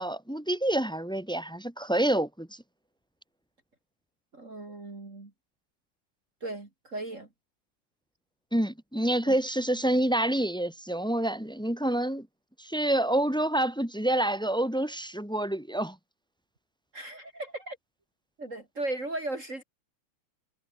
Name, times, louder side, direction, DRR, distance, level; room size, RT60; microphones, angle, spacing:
voice 1, 0.0-2.6 8.5-12.3 12.6-16.0, right 1 dB, ahead, 4.2 m, -27 dB
voice 2, 4.3-5.3 6.4-7.3 9.2-9.4 16.9-17.8 18.4-19.6, right 2 dB, 35° right, 3.4 m, -36 dB
omnidirectional pair, 2.3 m